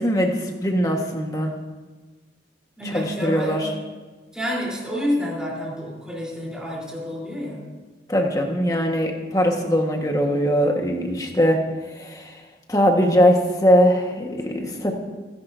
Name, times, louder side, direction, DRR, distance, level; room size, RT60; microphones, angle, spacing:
voice 1, 0.0-1.5 2.8-3.7 8.1-11.6 11.9-12.4 12.7-14.9, equal, 20° left, 1 dB, 1.6 m, -21 dB
voice 2, 2.8-3.7 4.3-7.6, equal, 5° right, -5 dB, 3.9 m, -28 dB
27.5 x 10.5 x 2.8 m, 1.3 s
head